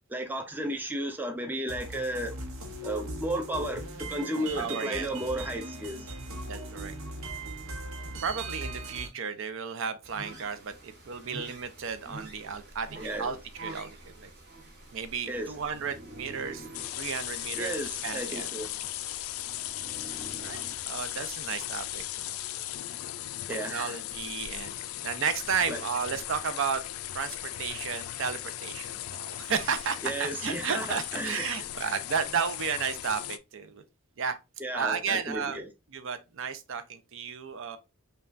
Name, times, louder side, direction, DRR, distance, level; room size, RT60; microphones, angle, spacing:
voice 1, 0.1-2.4 2.8-6.1 13.0-13.4 15.3-15.5 17.5-18.8 23.5-24.0 25.7-25.8 30.0-31.4 34.6-35.7, right 1 dB, 10° right, 0.4 m, -33 dB
sound 1, 1.7-9.1, right 2 dB, 90° right, 0.9 m, -39 dB
voice 2, 4.4-5.1 6.4-6.9 8.2-14.3 14.9-16.7 17.0-17.7 18.0-18.5 20.1-22.4 23.5-26.8 27.1-30.0 30.4-33.8 34.2-34.4 34.7-35.6 35.9-37.8, right 6 dB, 65° right, 0.6 m, -33 dB
sound 2, 10.0-22.0, right 1 dB, 50° right, 1.3 m, -47 dB
sound 3, 16.7-33.4, left 13 dB, 85° left, 0.3 m, -37 dB
5.4 x 2.3 x 2.4 m
head